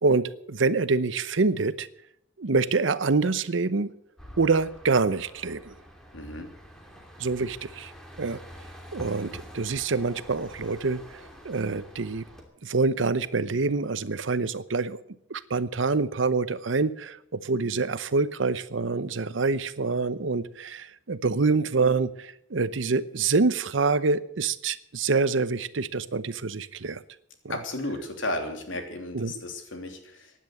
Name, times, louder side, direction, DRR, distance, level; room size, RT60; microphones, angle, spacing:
voice 1, 0.0-1.9 2.4-3.9 4.4-5.7 7.2-7.9 8.2-8.4 8.9-11.0 11.4-12.2 12.6-15.0 15.3-27.0 27.4-27.6 29.1-29.3, right 4 dB, 85° right, 15 dB, 0.8 m, -26 dB
sound 1, 4.2-12.4, equal, 5° left, 2.7 m, -47 dB
voice 2, 6.1-6.5 27.5-30.3, left 1 dB, 90° left, 4 dB, 3.1 m, -34 dB
16.0 x 10.5 x 7.7 m, 0.74 s
head